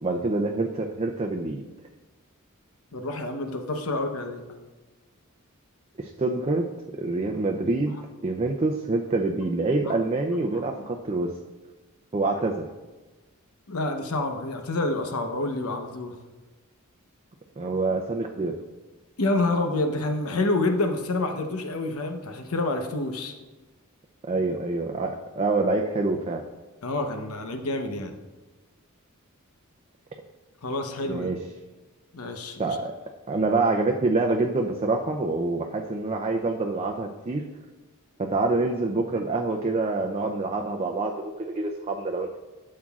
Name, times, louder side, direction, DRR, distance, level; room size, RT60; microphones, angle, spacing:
voice 1, 0.0-1.6 6.0-8.0 8.2-11.3 12.1-12.6 17.6-18.5 24.3-26.4 31.1-31.4 32.6-32.9 33.3-37.5 38.2-42.4, right 3 dB, 30° right, 2 dB, 0.5 m, -26 dB
voice 2, 2.9-4.4 7.9-8.0 9.9-10.0 10.5-10.6 13.7-16.1 19.2-23.3 26.8-28.1 30.6-31.3 32.1-32.8, left 2 dB, 90° left, 5 dB, 0.9 m, -28 dB
12.5 x 7.5 x 2.4 m, 1.2 s
head